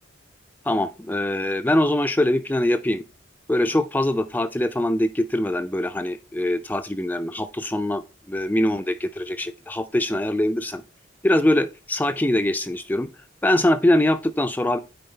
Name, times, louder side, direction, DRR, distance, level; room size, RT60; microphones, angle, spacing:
voice 1, 0.7-3.0 3.5-8.0 8.3-10.8 11.2-13.1 13.4-14.8, left 1 dB, 10° left, 0.3 m, -23 dB
9.3 x 4.6 x 3.2 m
head